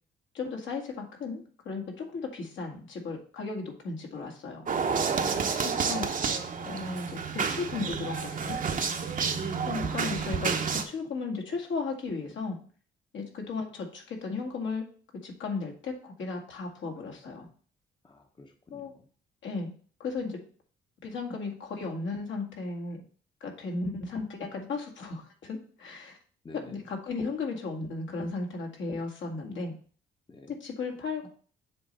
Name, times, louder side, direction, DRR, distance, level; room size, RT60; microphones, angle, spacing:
voice 1, 0.3-4.7 5.6-6.1 6.7-8.6 9.7-12.6 13.1-14.9 15.2-17.5 18.7-18.9 19.4-19.7 20.0-20.4 21.0-23.0 23.4-26.2 26.5-29.7 30.5-31.3, left 4 dB, 70° left, 1 dB, 1.9 m, -35 dB
sound 1, 4.7-10.8, right 5 dB, 40° right, 0.9 m, -30 dB
voice 2, 5.2-5.5 9.1-9.5 18.0-18.9 26.4-26.8 30.3-30.5, left 2 dB, 25° left, 4 dB, 0.9 m, -48 dB
7.7 x 3.2 x 5.4 m, 0.43 s
cardioid pair, 90°, 20 cm